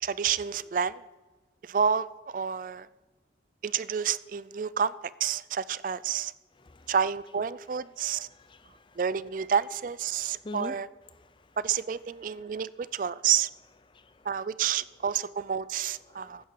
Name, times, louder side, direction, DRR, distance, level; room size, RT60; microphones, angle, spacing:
voice 1, 0.0-1.0 1.6-2.9 3.6-4.9 5.2-6.3 6.9-8.3 9.0-10.9 11.6-13.5 14.3-16.5, right 7 dB, 50° right, 18 dB, 0.4 m, -29 dB
voice 2, 6.6-6.9 8.3-9.0 10.4-10.8 11.2-11.5 13.9-14.3 16.1-16.5, left 2 dB, 30° left, 13 dB, 0.5 m, -44 dB
15.0 x 11.0 x 4.6 m, 1.2 s
head